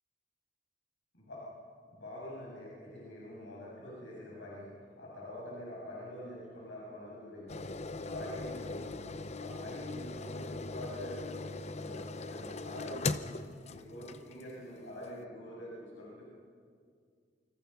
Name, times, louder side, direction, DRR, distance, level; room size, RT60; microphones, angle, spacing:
voice 1, 1.9-7.7 8.0-8.9 9.4-13.4 13.7-16.2, left 1 dB, 85° left, -6 dB, 7.5 m, -45 dB
sound 1, 7.5-14.5 15.0-15.1, left 3 dB, 35° left, 0.8 m, -39 dB
28.5 x 25.5 x 5.8 m, 2.1 s
head